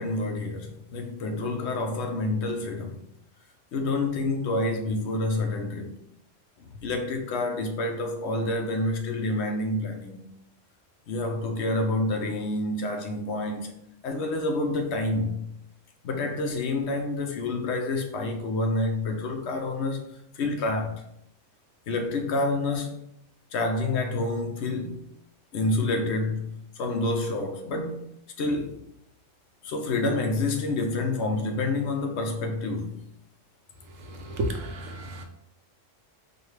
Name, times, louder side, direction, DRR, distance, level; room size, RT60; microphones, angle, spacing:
voice 1, 0.0-3.0 3.7-5.9 6.6-10.3 11.1-13.7 14.0-15.4 16.0-20.0 20.4-21.0 21.9-23.0 23.5-25.0 25.5-28.8 29.6-33.0, left 2 dB, 65° left, 0.9 m, -28 dB
voice 2, 34.1-35.2, right 1 dB, 85° right, 1.0 m, -32 dB
4.8 x 2.3 x 3.1 m
omnidirectional pair, 1.3 m